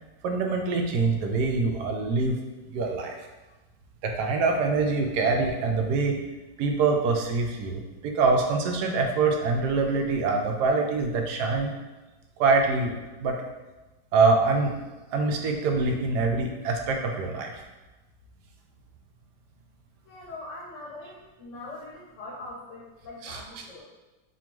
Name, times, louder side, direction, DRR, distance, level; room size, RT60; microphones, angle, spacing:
voice 1, 0.2-2.4 2.7-3.1 4.0-6.2 6.6-11.7 12.4-12.9 13.2-13.4 14.1-14.7 15.1-17.6 23.2-23.4, right 4 dB, 80° right, 2 dB, 1.1 m, -24 dB
voice 2, 20.0-23.8, left 2 dB, 60° left, -4 dB, 0.9 m, -42 dB
3.4 x 2.3 x 4.4 m, 1.1 s
omnidirectional pair, 1.8 m